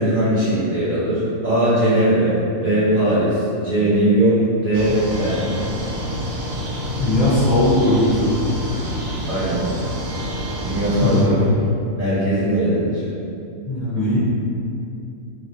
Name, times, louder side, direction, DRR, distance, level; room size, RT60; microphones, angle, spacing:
voice 1, 0.0-5.5 9.3-9.6 10.6-11.5 12.0-13.0, right 1 dB, 45° right, -12 dB, 1.0 m, -19 dB
sound 1, 4.7-11.2, equal, 75° right, 1.0 m, -27 dB
voice 2, 7.0-8.3 11.0-11.5 13.7-14.2, left 1 dB, 40° left, -13 dB, 0.8 m, -18 dB
3.2 x 2.4 x 2.7 m, 2.6 s
omnidirectional pair, 1.5 m